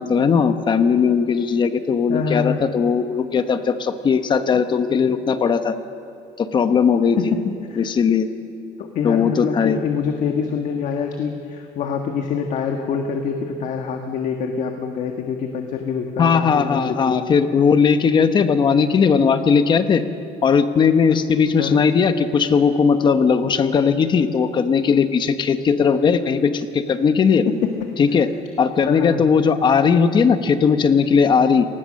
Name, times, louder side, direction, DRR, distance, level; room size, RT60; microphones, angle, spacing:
voice 1, 0.0-5.7 6.4-7.2 7.8-8.3 9.0-9.8 16.2-20.0 20.4-27.4 28.0-28.3 28.6-31.6, left 6 dB, 25° left, 9 dB, 1.1 m, -18 dB
voice 2, 2.1-2.6 7.2-7.9 8.8-17.2 21.6-21.8 27.4-28.0 28.8-29.2, left 6 dB, 45° left, 4 dB, 1.6 m, -25 dB
29.5 x 19.5 x 6.5 m, 2.7 s
cardioid pair, 160°, 17 cm